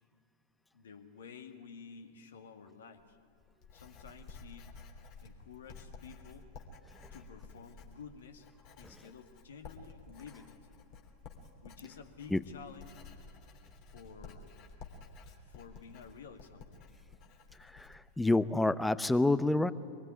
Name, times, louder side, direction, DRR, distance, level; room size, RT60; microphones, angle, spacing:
voice 1, 0.7-3.2 3.7-4.8 5.2-6.5 7.1-8.5 8.8-10.6 11.6-13.0 13.9-14.5 15.5-16.8, left 6 dB, 65° left, 7 dB, 2.1 m, -52 dB
Writing, 3.0-18.4, left 4 dB, 40° left, 3.2 m, -53 dB
voice 2, 17.6-19.7, left 2 dB, 5° left, 16 dB, 0.8 m, -28 dB
24.0 x 22.0 x 9.9 m, 2.3 s
figure-of-eight pair, 90°, 0 cm